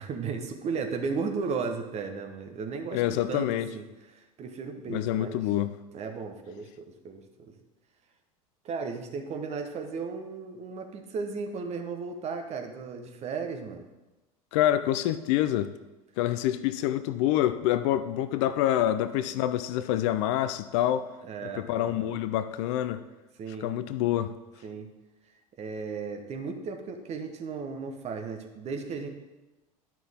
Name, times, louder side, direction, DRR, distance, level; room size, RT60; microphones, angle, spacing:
voice 1, 0.0-5.5 5.9-7.5 8.6-13.9 21.2-22.2 23.4-23.7 24.6-24.9 25.6-29.1, right 5 dB, 35° right, 5 dB, 1.2 m, -35 dB
voice 2, 2.9-3.7 4.9-5.8 14.5-15.7 16.2-21.1 21.6-23.0 23.6-24.3, left 12 dB, 55° left, 12 dB, 0.5 m, -26 dB
11.0 x 5.9 x 3.6 m, 1.1 s
figure-of-eight pair, 80°, 19 cm